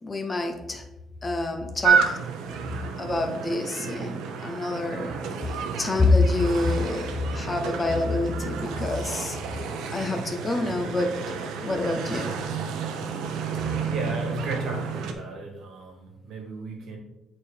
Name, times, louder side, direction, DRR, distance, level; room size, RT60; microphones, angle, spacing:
voice 1, 0.0-0.9 1.2-2.2 3.0-5.1 5.4-9.6 9.9-11.2 11.6-12.4, left 2 dB, 15° left, 5 dB, 0.5 m, -26 dB
sound 1, 1.8-15.1, right 6 dB, 80° right, 0.7 m, -30 dB
voice 2, 13.8-17.0, right 2 dB, 55° right, 2 dB, 1.4 m, -35 dB
8.5 x 4.3 x 3.3 m, 1.0 s
cardioid pair, 180°, 0 cm